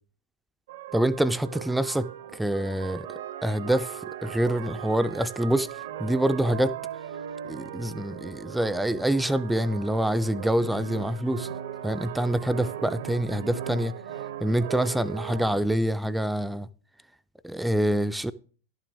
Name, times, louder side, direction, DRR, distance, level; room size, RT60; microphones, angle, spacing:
sound 1, 0.7-15.6, right 10 dB, 60° right, 0.6 m, -38 dB
voice 1, 0.9-3.1 3.4-6.8 7.5-11.5 11.8-14.0 14.4-16.7 17.4-18.3, right 1 dB, 5° right, 0.3 m, -26 dB
11.5 x 7.6 x 3.5 m
figure-of-eight pair, 90°, 0 cm